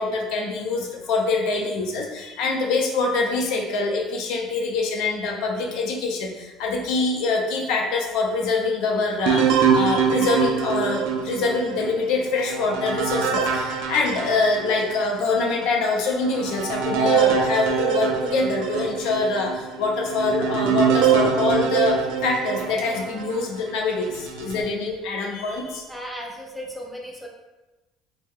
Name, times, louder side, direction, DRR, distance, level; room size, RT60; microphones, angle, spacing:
voice 1, 0.0-25.9, left 3 dB, 65° left, 1 dB, 0.5 m, -24 dB
sound 1, 9.3-15.0 15.5-15.6 16.2-23.4 24.0-24.6, right 7 dB, 90° right, 0.3 m, -24 dB
voice 2, 25.9-27.3, equal, ahead, -2 dB, 0.3 m, -35 dB
2.7 x 2.1 x 3.5 m, 1.1 s
cardioid pair, 165°, 0 cm